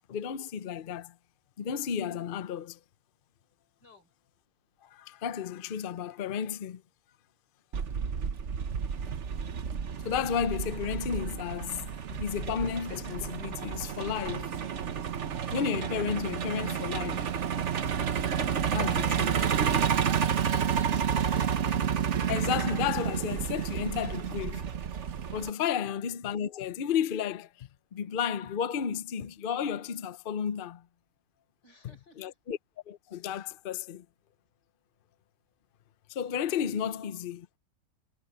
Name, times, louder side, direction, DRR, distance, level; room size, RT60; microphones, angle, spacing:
voice 1, 0.1-1.1 1.6-2.8 4.8-6.8 10.0-14.6 15.5-17.3 18.7-19.3 22.3-24.7 25.3-30.8 32.2-32.6 32.9-34.0 36.1-37.6, left 8 dB, 85° left, 0.4 m, -33 dB
Truck, 7.7-25.5, right 8 dB, 45° right, 1.0 m, -30 dB
voice 2, 19.2-21.6 31.6-32.4, left 1 dB, 60° left, 6.5 m, -50 dB
omnidirectional pair, 2.1 m